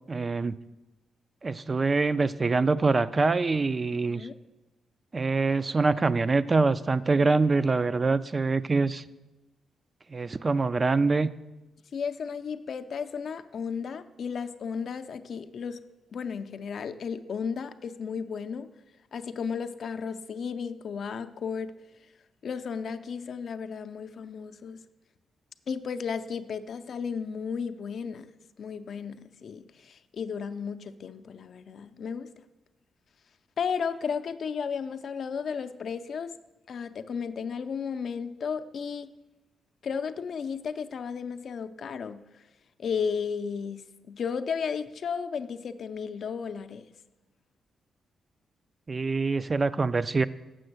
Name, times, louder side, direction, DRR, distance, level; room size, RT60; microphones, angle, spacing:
voice 1, 0.1-0.6 1.4-4.3 5.1-9.0 10.1-11.3 48.9-50.2, right 3 dB, 30° right, 14 dB, 0.3 m, -25 dB
voice 2, 11.9-15.8 16.1-18.7 19.1-21.7 22.4-24.8 25.7-28.3 28.6-32.3 33.6-36.3 36.7-39.1 39.8-42.4 42.8-46.9, left 6 dB, 55° left, 9 dB, 0.5 m, -34 dB
7.6 x 6.1 x 7.9 m, 1.0 s
cardioid pair, 115°, 0 cm